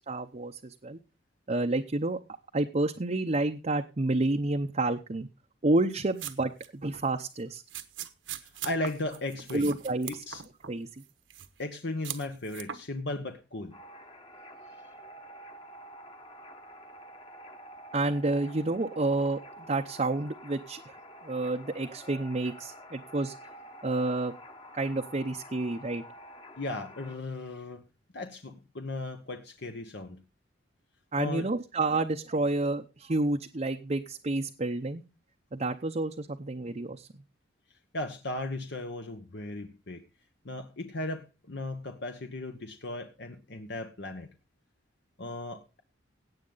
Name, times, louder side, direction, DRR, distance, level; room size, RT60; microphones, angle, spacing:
voice 1, 0.1-1.0 1.5-2.2 2.5-5.3 5.6-7.6 9.5-10.2 10.7-11.0 17.9-19.4 19.7-23.4 23.8-24.3 24.7-26.0 31.1-35.0 35.5-37.1, right 2 dB, 35° right, 4 dB, 0.7 m, -29 dB
sound 1, 5.9-6.7 6.9-7.1 7.7-10.7 11.0-11.6 12.0-12.8, right 10 dB, 70° right, 1.2 m, -40 dB
voice 2, 8.3-9.7 10.1-10.4 11.6-13.8 26.6-27.9 28.1-30.2 31.2-31.5 37.9-40.0 40.4-44.3 45.2-45.8, left 2 dB, 60° left, 6 dB, 1.1 m, -36 dB
sound 2, 13.7-27.2, equal, 25° left, 1.3 m, -49 dB
17.5 x 7.8 x 4.0 m, 0.30 s
head